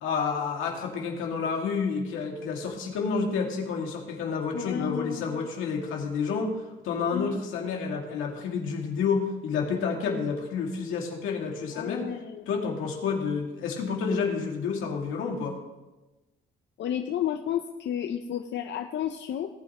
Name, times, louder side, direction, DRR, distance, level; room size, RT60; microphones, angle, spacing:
voice 1, 0.0-6.5 6.8-12.0 12.5-15.6, left 5 dB, 90° left, 0 dB, 2.2 m, -29 dB
voice 2, 4.5-5.3 7.1-7.4 11.7-12.5 16.8-19.5, left 10 dB, 65° left, 5 dB, 0.7 m, -32 dB
18.5 x 9.0 x 3.0 m, 1.1 s
cardioid pair, 90°, 20 cm